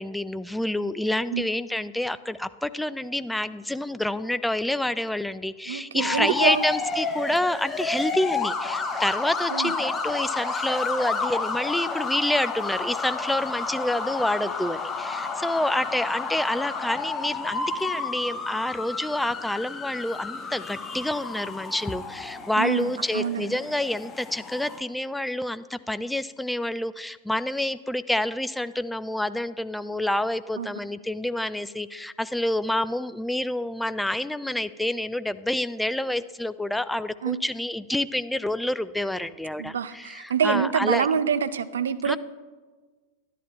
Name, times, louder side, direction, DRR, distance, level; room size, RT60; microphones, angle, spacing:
voice 1, 0.0-41.1 42.0-42.2, left 1 dB, 5° left, 14 dB, 0.3 m, -28 dB
voice 2, 5.7-6.6 9.5-9.7 22.6-23.6 30.6-30.7 37.2-37.4 39.6-42.2, right 7 dB, 65° right, 14 dB, 0.5 m, -26 dB
sound 1, 6.0-24.8, left 4 dB, 20° left, 0.9 m, -31 dB
11.5 x 11.0 x 3.4 m, 1.4 s
figure-of-eight pair, 90°, 0 cm